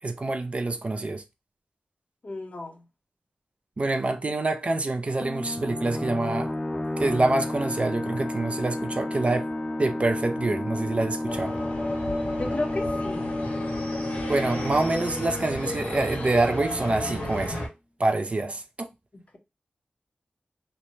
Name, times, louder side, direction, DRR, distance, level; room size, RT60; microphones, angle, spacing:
voice 1, 0.0-1.2 3.8-6.5 7.0-9.5 9.8-11.5 14.3-17.7 18.0-18.9, right 2 dB, 40° right, 0.4 m, -26 dB
voice 2, 2.2-2.8 12.3-13.3, left 2 dB, 45° left, 0.7 m, -33 dB
sound 1, 5.2-16.5, left 1 dB, 20° left, 0.4 m, -32 dB
sound 2, 11.3-17.7, left 1 dB, 80° left, 1.4 m, -32 dB
3.1 x 2.1 x 2.6 m
wide cardioid pair, 80°, 3 cm